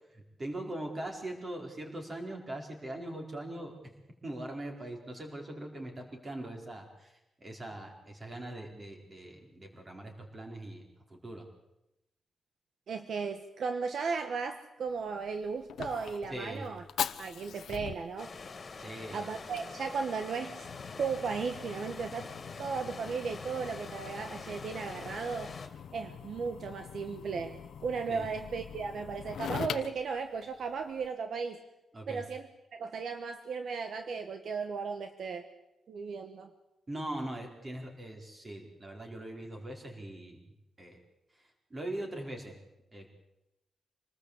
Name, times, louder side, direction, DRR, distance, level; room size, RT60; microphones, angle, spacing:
voice 1, 0.1-3.7 4.2-7.1 7.4-10.8 11.1-11.5 16.3-16.7 18.8-19.3 28.1-28.3 31.9-32.2 36.9-40.4 40.8-41.0 41.7-42.6 42.9-43.1, right 1 dB, 25° right, 2 dB, 4.8 m, -41 dB
voice 2, 12.9-16.8 17.2-18.3 19.1-20.7 21.0-22.3 22.6-25.5 25.9-27.6 27.8-31.6 32.1-35.5 35.9-36.5, right 5 dB, 60° right, 7 dB, 1.5 m, -36 dB
Fire, 14.9-31.1, left 8 dB, 90° left, 1.0 m, -43 dB
sound 1, 18.2-25.7, left 4 dB, 35° left, 2.8 m, -45 dB
26.0 x 19.5 x 8.3 m, 0.94 s
wide cardioid pair, 165°, 0 cm